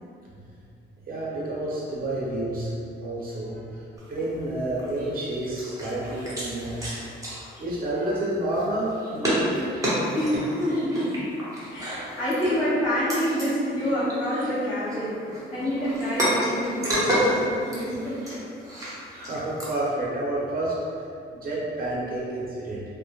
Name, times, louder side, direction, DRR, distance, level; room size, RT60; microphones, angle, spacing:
voice 1, 1.1-2.7 3.0-3.8 4.1-6.8 7.6-9.7 15.5-15.7 18.7-20.7 21.3-22.8, right 1 dB, 50° right, -6 dB, 0.8 m, -29 dB
sound 1, 4.0-4.4 4.8-5.1 5.4-8.1 8.5-13.5 13.8-19.7, equal, 15° right, 0.7 m, -30 dB
voice 2, 10.1-11.2 11.7-18.4, equal, 25° left, -14 dB, 0.9 m, -27 dB
2.1 x 2.1 x 2.8 m, 2.5 s
cardioid pair, 90°, 20 cm